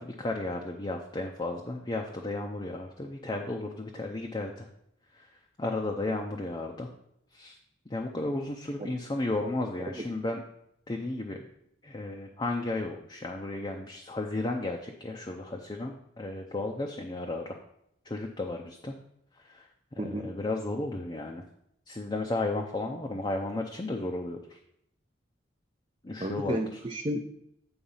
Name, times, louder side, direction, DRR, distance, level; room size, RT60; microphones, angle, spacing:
voice 1, 0.0-4.7 5.1-6.9 7.3-7.6 7.9-10.4 10.9-11.5 11.8-17.6 18.0-18.9 19.3-21.4 21.9-24.6 26.0-26.8, left 2 dB, 25° left, 1 dB, 0.5 m, -34 dB
voice 2, 20.0-20.3 26.2-27.3, right 1 dB, 25° right, 2 dB, 0.4 m, -32 dB
8.7 x 3.9 x 5.5 m, 0.76 s
head